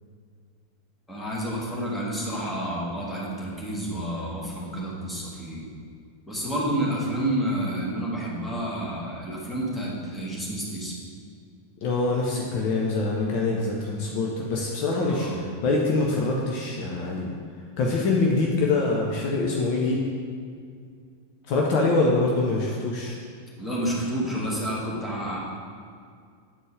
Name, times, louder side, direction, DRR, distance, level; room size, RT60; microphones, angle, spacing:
voice 1, 1.1-5.7 6.3-10.9 15.1-15.4 23.6-25.4, right 1 dB, 5° left, -6 dB, 1.5 m, -29 dB
voice 2, 11.8-17.3 17.8-20.0 21.5-23.2, left 3 dB, 45° left, -2 dB, 0.7 m, -24 dB
8.8 x 4.3 x 3.4 m, 2.2 s
figure-of-eight pair, 90°, 0 cm